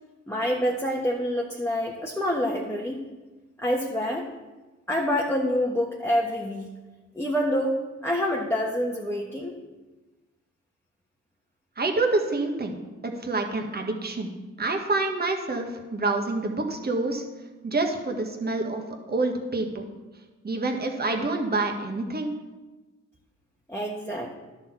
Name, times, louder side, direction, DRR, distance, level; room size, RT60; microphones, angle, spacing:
voice 1, 0.3-3.0 3.6-4.3 4.9-6.7 7.1-7.8 8.0-9.6 23.7-24.3, equal, 10° left, -2 dB, 1.3 m, -27 dB
voice 2, 11.8-12.8 13.0-14.3 14.6-17.2 17.6-18.8 19.1-19.8 20.4-22.3, right 3 dB, 30° right, 3 dB, 1.6 m, -27 dB
11.0 x 4.0 x 7.3 m, 1.2 s
supercardioid pair, 55°, 30 cm